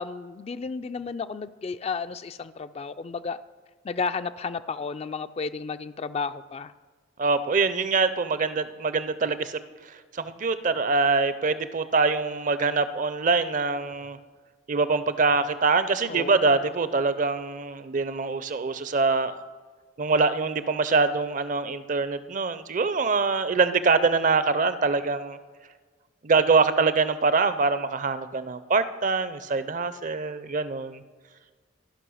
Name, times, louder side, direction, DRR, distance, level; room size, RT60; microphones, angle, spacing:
voice 1, 0.0-3.4 3.8-6.7 16.1-16.6, left 5 dB, 30° left, 11 dB, 0.3 m, -32 dB
voice 2, 7.2-9.6 10.1-14.2 14.7-19.4 20.0-25.4 26.2-31.0, right 4 dB, 40° right, 13 dB, 0.5 m, -24 dB
14.0 x 5.4 x 6.3 m, 1.5 s
head